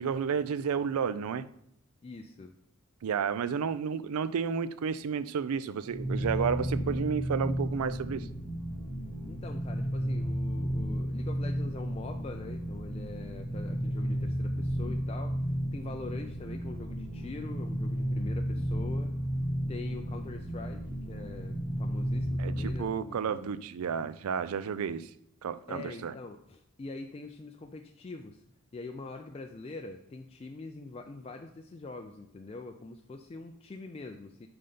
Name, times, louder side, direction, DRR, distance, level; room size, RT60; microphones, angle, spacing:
voice 1, 0.0-1.5 3.0-8.3 22.4-25.1 25.4-26.1, right 6 dB, 80° right, 15 dB, 0.4 m, -31 dB
voice 2, 2.0-2.5 9.0-15.4 15.7-19.1 19.7-23.6 25.7-28.4 28.7-34.5, left 3 dB, 25° left, 4 dB, 0.3 m, -44 dB
sound 1, 5.9-22.9, equal, ahead, 0.8 m, -33 dB
5.6 x 4.0 x 5.0 m, 0.75 s
head